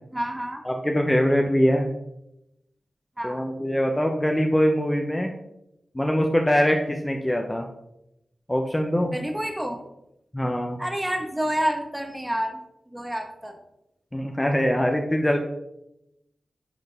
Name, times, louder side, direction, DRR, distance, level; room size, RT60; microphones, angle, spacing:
voice 1, 0.1-0.6 3.2-3.4 9.1-9.8 10.8-12.6 12.9-13.6, right 1 dB, 15° right, 4 dB, 1.3 m, -28 dB
voice 2, 0.7-1.9 3.2-5.3 5.9-7.7 8.5-9.1 10.3-10.8 14.1-15.4, equal, 15° left, 3 dB, 0.8 m, -23 dB
10.5 x 3.9 x 3.6 m, 0.85 s
cardioid pair, 45°, 0 cm